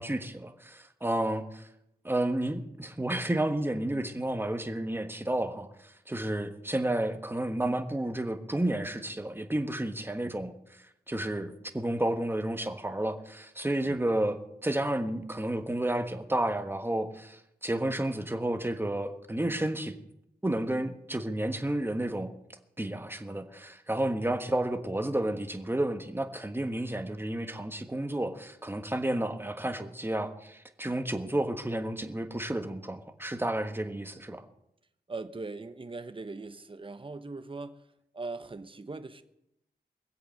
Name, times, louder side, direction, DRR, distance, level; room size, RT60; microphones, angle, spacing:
voice 1, 0.0-1.7 2.0-10.5 11.1-20.0 20.4-22.3 22.8-34.4, right 1 dB, 15° right, 7 dB, 1.4 m, -31 dB
voice 2, 35.1-37.8 38.1-39.2, right 3 dB, 35° right, 9 dB, 1.0 m, -40 dB
22.0 x 8.0 x 6.5 m, 0.83 s
wide cardioid pair, 80°, 16 cm